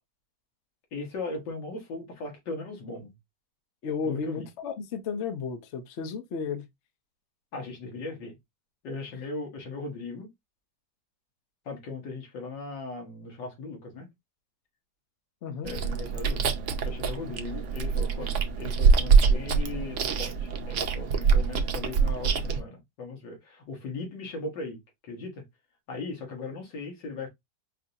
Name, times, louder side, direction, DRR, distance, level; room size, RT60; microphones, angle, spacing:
voice 1, 0.9-3.1 4.0-4.5 7.5-8.4 8.8-10.3 11.7-14.1 15.6-16.4 16.8-25.4 25.9-27.3, left 3 dB, 90° left, 2.1 m, -38 dB
voice 2, 3.8-6.7 15.4-15.7, left 5 dB, 55° left, 0.8 m, -33 dB
Chewing mastication, 15.6-22.6, right 5 dB, 65° right, 0.7 m, -24 dB
4.9 x 2.6 x 2.7 m
omnidirectional pair, 1.9 m